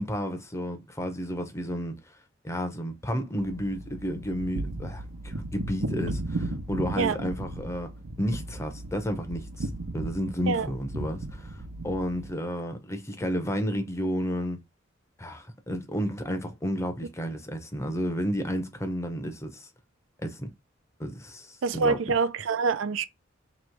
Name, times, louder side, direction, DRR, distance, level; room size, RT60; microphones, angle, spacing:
voice 1, 0.0-1.9 2.4-14.6 15.2-19.7 20.2-20.5 21.0-22.0, equal, 15° left, 0.8 m, -32 dB
sound 1, 3.4-12.3, right 2 dB, 85° right, 0.8 m, -35 dB
voice 2, 21.6-23.0, right 4 dB, 70° right, 0.4 m, -25 dB
3.1 x 3.0 x 4.5 m
head